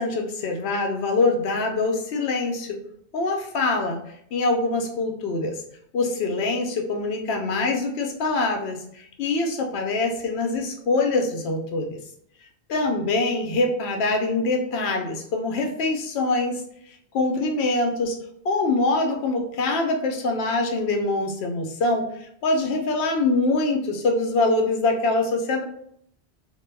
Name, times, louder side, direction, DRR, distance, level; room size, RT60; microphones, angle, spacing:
voice 1, 0.0-2.8 3.1-4.0 4.3-5.6 5.9-12.0 12.7-16.6 17.1-18.2 18.4-25.6, left 2 dB, 70° left, 3 dB, 0.8 m, -24 dB
2.2 x 2.1 x 3.1 m, 0.69 s
omnidirectional pair, 1.2 m